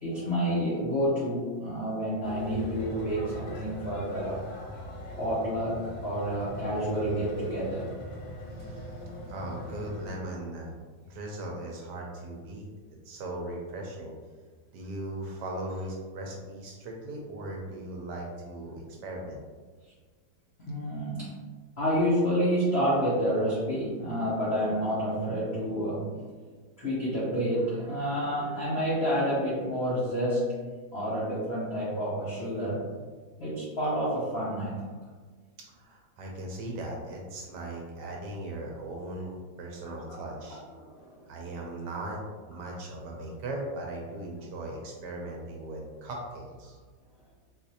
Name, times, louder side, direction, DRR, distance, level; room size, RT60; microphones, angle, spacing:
voice 1, 0.0-4.4 5.2-7.9 20.6-21.4 21.8-26.3 26.8-30.7 30.9-32.8 33.4-34.8 40.0-40.2 40.8-40.9, equal, 85° left, -7 dB, 0.5 m, -29 dB
sound 1, 2.2-10.1, left 1 dB, 55° left, 0.9 m, -40 dB
voice 2, 8.5-9.0 9.3-10.7 11.0-12.7 13.0-14.1 14.7-19.4 35.7-40.6 41.3-42.2 42.5-46.8, right 1 dB, 75° right, 0 dB, 1.0 m, -38 dB
3.9 x 2.5 x 2.7 m, 1.4 s
omnidirectional pair, 2.1 m